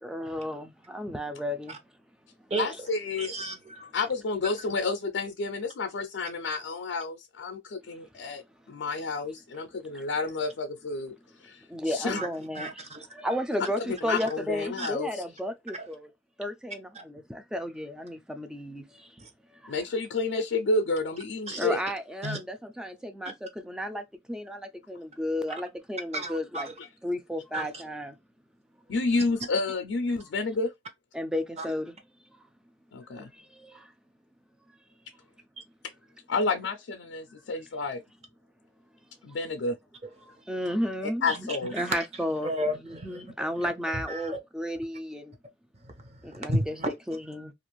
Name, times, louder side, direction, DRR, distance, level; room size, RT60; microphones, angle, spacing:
voice 1, 0.0-1.8 9.9-10.1 11.7-12.9 13.1-16.1 16.4-19.2 19.6-19.8 21.5-26.7 27.0-28.2 31.1-32.0 33.1-33.9 40.2-42.5 42.8-45.3 46.2-46.7 47.1-47.5, equal, 5° right, 0.4 m, -33 dB
voice 2, 2.6-3.3 3.9-8.4 8.7-11.1 11.4-12.2 14.0-15.2 19.7-21.8 28.9-30.7 32.9-33.3 36.3-38.0 39.2-39.8 41.2-41.7, left 3 dB, 75° left, 0.4 m, -30 dB
voice 3, 3.2-3.9 12.2-12.3 12.6-13.1 14.8-14.9 19.2-19.3 21.5-21.7 22.2-22.4 26.1-26.7 27.5-27.8 31.6-31.7 40.0-40.1 41.3-41.4 41.8-42.1 42.4-43.2 43.9-44.4 45.8-47.2, right 1 dB, 35° right, 0.7 m, -33 dB
2.4 x 2.4 x 3.0 m
head